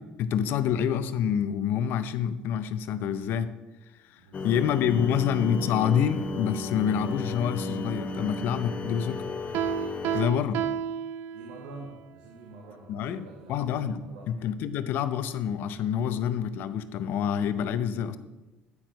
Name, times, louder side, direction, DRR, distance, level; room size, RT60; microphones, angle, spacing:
voice 1, 0.0-3.5 4.4-9.2 10.1-10.6 12.9-13.2 13.5-14.0 14.3-18.2, left 8 dB, 65° left, 12 dB, 0.6 m, -27 dB
voice 2, 4.2-4.7 5.0-5.4 11.3-14.4, right 2 dB, 90° right, -1 dB, 1.4 m, -47 dB
sound 1, 4.3-10.3, left 2 dB, 35° left, 0.8 m, -34 dB
Piano, 9.5-11.8, right 9 dB, 65° right, 0.3 m, -31 dB
9.6 x 4.5 x 6.3 m, 1.1 s
supercardioid pair, 95°, 4 cm